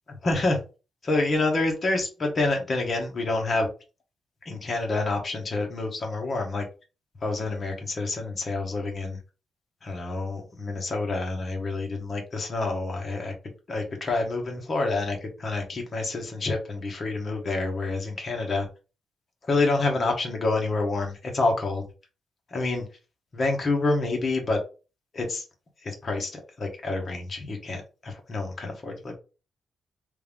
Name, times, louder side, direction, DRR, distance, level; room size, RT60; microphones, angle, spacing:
voice 1, 0.2-0.6 1.0-3.7 4.4-6.6 7.2-9.2 9.8-13.3 13.7-18.7 19.4-21.8 22.5-22.9 23.3-24.6 25.1-25.4 25.8-29.2, left 2 dB, 35° left, 1 dB, 1.2 m, -27 dB
3.4 x 2.8 x 3.5 m, 0.32 s
wide cardioid pair, 155°, 0 cm